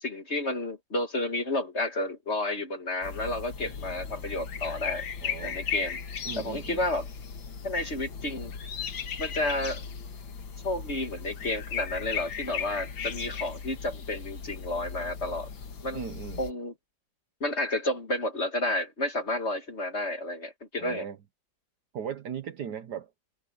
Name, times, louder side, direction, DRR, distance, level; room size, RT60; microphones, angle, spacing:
voice 1, 0.0-5.1 5.4-6.0 6.4-7.1 7.6-8.5 9.2-9.8 10.6-15.5 15.8-16.0 16.4-16.7 17.4-21.1, left 2 dB, 35° left, 1.8 m, -31 dB
sound 1, 3.0-16.5, left 7 dB, 85° left, 2.4 m, -37 dB
voice 2, 5.2-5.6 6.2-6.9 15.9-16.4 20.8-21.2 21.9-23.1, right 8 dB, 60° right, 1.5 m, -38 dB
omnidirectional pair, 2.1 m